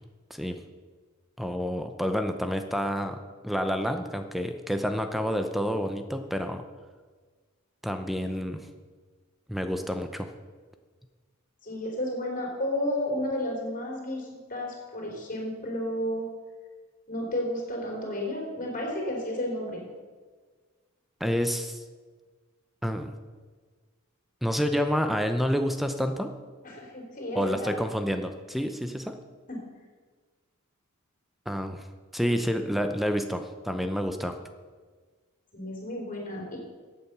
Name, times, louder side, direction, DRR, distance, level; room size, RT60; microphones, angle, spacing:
voice 1, 0.3-0.6 1.4-3.2 3.4-6.6 7.8-8.7 9.5-10.3 21.2-21.8 22.8-23.1 24.4-26.3 27.3-29.2 31.5-31.9 32.1-34.4, equal, ahead, 7 dB, 0.7 m, -29 dB
voice 2, 11.6-16.3 17.1-19.8 26.6-27.7 29.5-29.6 35.5-36.6, left 1 dB, 40° left, -1 dB, 3.8 m, -32 dB
15.0 x 8.6 x 6.1 m, 1.4 s
head